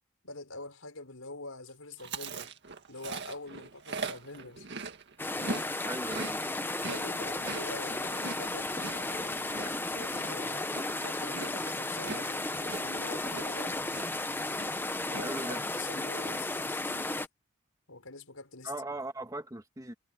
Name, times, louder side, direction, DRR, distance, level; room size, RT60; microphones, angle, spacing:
voice 1, 0.2-2.5 2.9-4.7 5.3-5.7 6.9-10.7 11.0-13.9 15.1-17.2 17.9-19.0, left 3 dB, 75° left, 5.1 m, -45 dB
Chewing mastication, 2.0-5.7 5.9-13.7 13.9-14.3 14.5-15.2, right 3 dB, 55° right, 2.0 m, -41 dB
sound 1, 5.2-17.3, left 2 dB, 10° left, 0.9 m, -34 dB
voice 2, 5.8-6.4 15.2-15.7 18.6-19.9, right 2 dB, 15° right, 1.7 m, -39 dB
head